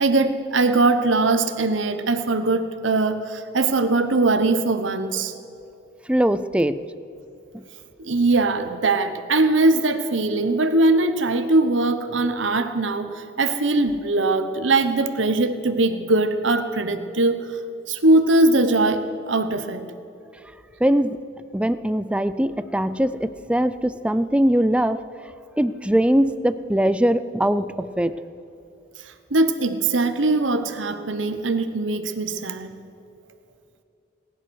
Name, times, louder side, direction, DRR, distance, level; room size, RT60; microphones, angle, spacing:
voice 1, 0.0-5.3 8.0-17.4 17.9-19.9 29.3-32.7, right 2 dB, 90° right, 9 dB, 1.1 m, -21 dB
voice 2, 6.1-6.8 7.5-7.6 20.8-21.2 21.5-25.0 25.6-28.2, equal, 5° right, 13 dB, 0.5 m, -21 dB
18.5 x 11.0 x 6.4 m, 2.8 s
head